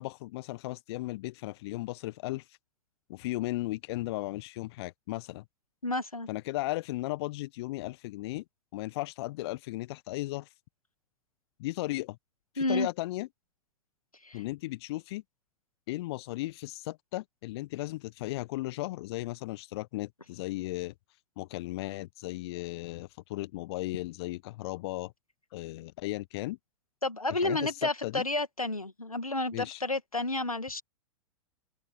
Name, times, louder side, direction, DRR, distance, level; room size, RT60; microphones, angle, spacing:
voice 1, 0.0-2.6 3.1-5.4 6.3-8.4 8.7-10.5 11.6-12.2 12.5-13.3 14.3-15.2 15.9-20.9 21.4-25.1 25.5-26.6 27.3-28.2 29.5-29.8, left 18 dB, 45° left, 1.2 m, -36 dB
voice 2, 5.8-6.3 12.6-12.9 14.2-14.4 27.0-30.8, left 2 dB, 85° left, 2.1 m, -31 dB
figure-of-eight pair, 95°, 18 cm